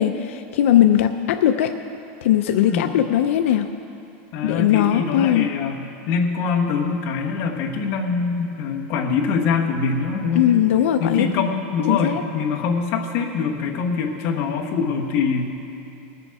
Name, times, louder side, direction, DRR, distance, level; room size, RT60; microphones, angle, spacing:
voice 1, 0.0-1.7 2.2-3.7 4.4-5.5 10.4-11.4 11.9-12.2, left 11 dB, 80° left, 6 dB, 0.5 m, -19 dB
voice 2, 2.6-3.0 4.3-10.6 11.0-15.4, left 5 dB, 35° left, 0 dB, 1.2 m, -24 dB
20.5 x 6.9 x 4.7 m, 2.7 s
supercardioid pair, 180°, 7 cm